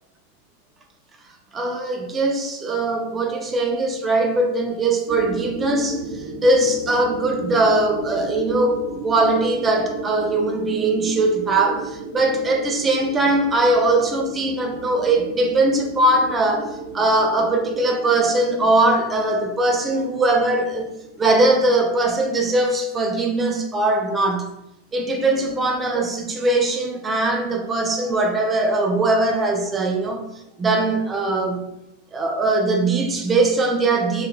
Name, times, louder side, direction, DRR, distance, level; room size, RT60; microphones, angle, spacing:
voice 1, 1.5-6.0 6.4-20.9 21.2-24.5 24.9-30.2 30.6-31.7 32.1-34.3, right 2 dB, 20° right, 3 dB, 0.5 m, -20 dB
sound 1, 5.1-22.0, right 2 dB, 60° right, 1.0 m, -35 dB
3.3 x 3.1 x 2.3 m, 0.86 s
figure-of-eight pair, 90°, 0 cm